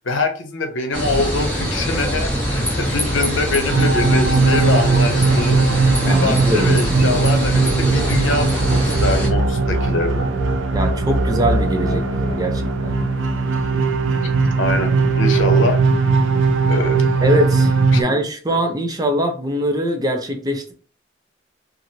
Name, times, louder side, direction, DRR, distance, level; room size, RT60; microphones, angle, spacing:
voice 1, 0.0-10.3 14.2-14.3 14.6-15.8 16.7-17.0 17.9-18.0 18.5-18.6, left 2 dB, 85° left, 5 dB, 0.7 m, -24 dB
sound 1, 0.9-9.3, equal, 5° left, 0.9 m, -23 dB
sound 2, 3.7-18.0, right 3 dB, 90° right, 0.4 m, -18 dB
voice 2, 6.0-7.2 10.7-12.9 17.2-17.7 18.0-20.7, equal, 20° right, 4 dB, 0.4 m, -22 dB
2.9 x 2.5 x 2.7 m, 0.40 s
head